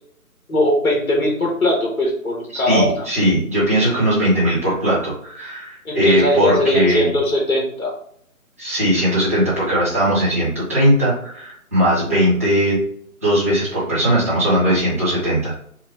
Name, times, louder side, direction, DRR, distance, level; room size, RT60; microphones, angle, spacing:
voice 1, 0.5-3.0 5.8-7.9, left 1 dB, 70° left, -3 dB, 1.2 m, -19 dB
voice 2, 2.6-7.1 8.6-12.8 13.2-15.5, equal, 10° right, -12 dB, 0.8 m, -19 dB
3.0 x 2.1 x 3.2 m, 0.67 s
figure-of-eight pair, 155°, 44 cm